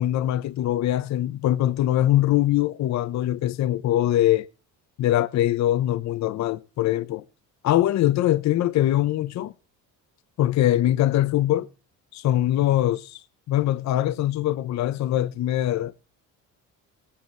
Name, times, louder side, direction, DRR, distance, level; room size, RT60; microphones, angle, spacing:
voice 1, 0.0-4.5 5.0-7.2 7.6-9.5 10.4-11.7 12.1-13.2 13.5-16.0, left 13 dB, 50° left, 0.8 m, -22 dB
18.5 x 8.6 x 4.5 m
cardioid pair, 155°, 34 cm